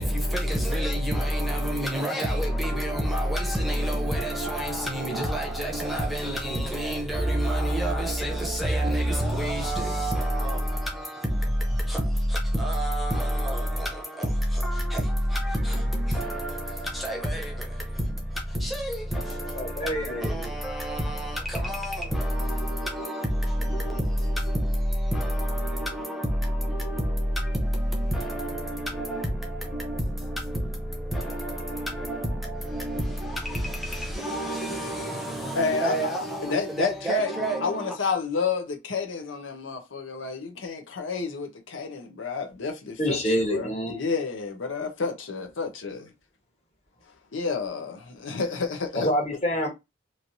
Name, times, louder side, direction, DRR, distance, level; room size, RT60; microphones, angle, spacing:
voice 1, 0.0-38.0, equal, ahead, 0.7 m, -28 dB
voice 2, 19.5-20.3 43.0-44.0 48.9-49.7, equal, 35° left, 1.1 m, -26 dB
voice 3, 35.5-37.3 37.6-46.0 47.3-49.1, left 4 dB, 90° left, 0.7 m, -30 dB
3.1 x 2.6 x 2.6 m
head